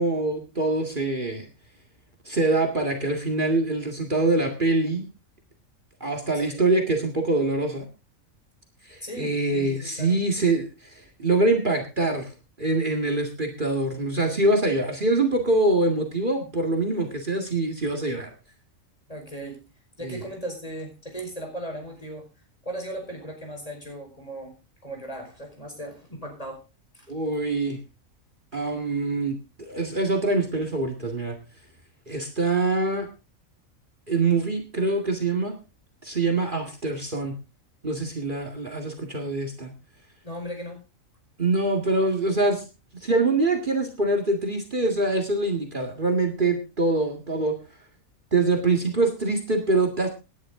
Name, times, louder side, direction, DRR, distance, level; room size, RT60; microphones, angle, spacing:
voice 1, 0.0-1.5 2.3-5.0 6.0-7.9 8.9-12.3 12.6-18.3 20.0-20.2 27.1-27.8 28.5-31.4 32.1-33.1 34.1-35.5 36.0-37.3 37.8-39.7 41.4-42.6 43.0-47.6 48.3-50.1, right 2 dB, 40° right, 3 dB, 2.3 m, -24 dB
voice 2, 9.0-10.2 19.1-19.6 20.0-22.3 22.6-24.6 24.8-26.6 26.9-27.1 40.2-40.8, right 1 dB, 25° left, 3 dB, 4.9 m, -37 dB
17.5 x 11.0 x 3.8 m, 0.30 s
omnidirectional pair, 1.4 m